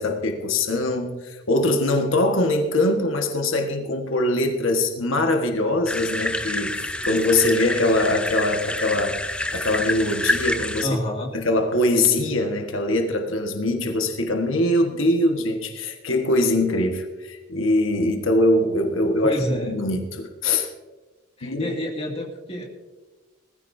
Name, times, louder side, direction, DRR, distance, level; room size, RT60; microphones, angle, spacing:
voice 1, 0.0-9.2 9.5-11.0 11.3-20.7 21.4-21.7, left 1 dB, 90° left, 4 dB, 1.6 m, -22 dB
sound 1, 5.9-10.8, left 1 dB, 5° left, 0.5 m, -27 dB
voice 2, 10.8-11.3 19.0-19.7 21.4-22.6, left 1 dB, 30° left, 0 dB, 2.3 m, -29 dB
19.5 x 15.0 x 2.7 m, 1.2 s
head